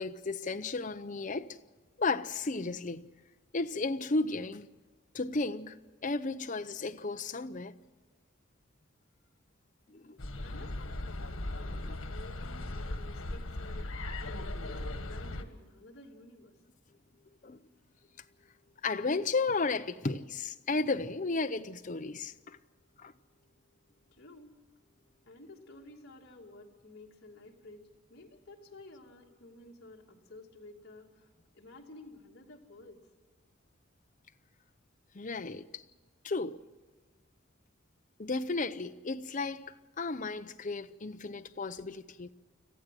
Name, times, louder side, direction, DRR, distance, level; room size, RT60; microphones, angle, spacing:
voice 1, 0.0-1.6 2.0-3.1 3.5-4.7 5.1-5.8 6.0-7.8 9.9-10.2 11.9-12.0 17.4-17.6 18.8-22.6 23.0-23.1 35.1-35.8 36.2-36.6 38.2-42.3, left 3 dB, 40° left, 0.7 m, -34 dB
sound 1, 10.2-15.4, left 1 dB, 90° left, 1.6 m, -38 dB
voice 2, 10.4-13.9 14.2-16.6 24.1-24.6 25.2-27.8 28.1-33.1, left 2 dB, 55° left, 2.7 m, -52 dB
25.5 x 15.0 x 7.6 m
head